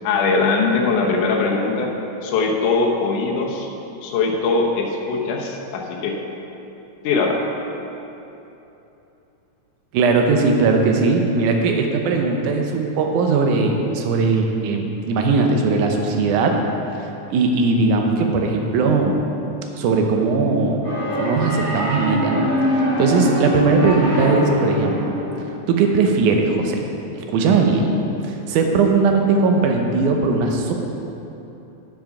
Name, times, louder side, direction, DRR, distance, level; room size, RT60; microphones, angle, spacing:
voice 1, 0.0-1.9 2.2-3.7 4.0-6.2 7.0-7.4, left 4 dB, 75° left, 0 dB, 2.4 m, -21 dB
voice 2, 9.9-16.5 17.3-19.3 19.7-20.8 21.2-25.2 25.7-26.8 27.2-27.9 28.2-30.7, right 4 dB, 75° right, 2 dB, 2.2 m, -19 dB
sound 1, 20.8-25.6, left 1 dB, 30° right, 1.3 m, -23 dB
7.7 x 7.3 x 5.8 m, 3.0 s
omnidirectional pair, 3.9 m